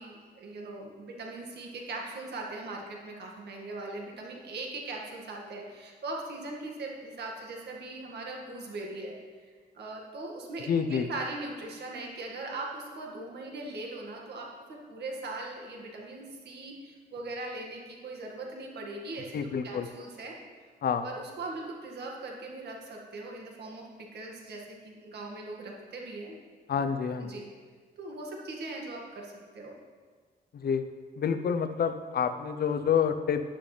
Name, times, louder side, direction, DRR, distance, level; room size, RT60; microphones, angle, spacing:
voice 1, 0.0-9.1 9.4-20.4 21.0-26.4 26.7-27.5 28.0-29.8, right 2 dB, 80° right, -1 dB, 2.0 m, -40 dB
voice 2, 10.7-11.0 19.3-19.9 20.8-21.0 26.7-27.3 30.5-30.9 31.2-33.4, left 7 dB, 65° left, 9 dB, 0.7 m, -28 dB
11.5 x 10.0 x 3.4 m, 1.5 s
wide cardioid pair, 125°, 17 cm